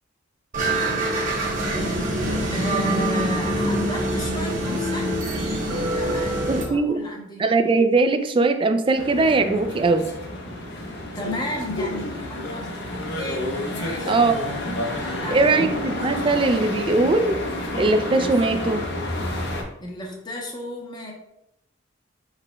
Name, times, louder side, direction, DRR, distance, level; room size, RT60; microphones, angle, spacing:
sound 1, 0.5-6.6, right 1 dB, 40° right, 1.1 m, -24 dB
voice 1, 2.5-5.2 5.6-7.4 11.0-14.5 14.9-16.3 19.8-21.1, equal, 20° left, 0 dB, 0.8 m, -33 dB
voice 2, 6.5-7.0 7.4-10.0 14.1-14.5 15.3-17.4 17.8-18.9, right 3 dB, 25° right, 8 dB, 0.3 m, -20 dB
sound 2, 9.0-19.6, left 1 dB, 55° left, 0.8 m, -30 dB
4.9 x 4.7 x 2.2 m, 0.85 s
head